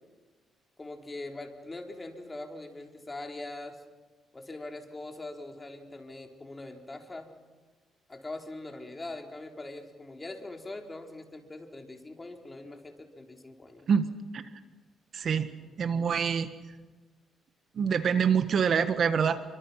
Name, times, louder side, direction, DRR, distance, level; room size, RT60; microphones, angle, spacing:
voice 1, 0.8-3.8 4.3-7.3 8.1-13.9, left 2 dB, 20° left, 3 dB, 4.2 m, -42 dB
voice 2, 13.9-14.5 15.1-15.5 15.8-16.5 17.7-19.4, right 7 dB, 55° right, 10 dB, 1.6 m, -26 dB
29.5 x 25.0 x 5.9 m, 1.3 s
cardioid pair, 90°, 0 cm